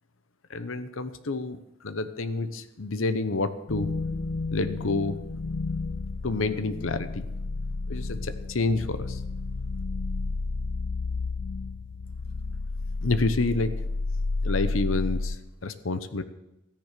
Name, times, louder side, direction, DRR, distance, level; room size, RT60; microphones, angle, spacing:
voice 1, 0.5-1.6 1.8-3.9 4.5-5.4 6.2-7.3 7.9-9.2 13.0-13.7 14.4-15.4 15.6-16.2, left 3 dB, 80° left, 11 dB, 1.0 m, -28 dB
sound 1, 3.7-15.4, left 3 dB, 60° left, 0.7 m, -31 dB
13.5 x 10.5 x 6.7 m, 0.95 s
head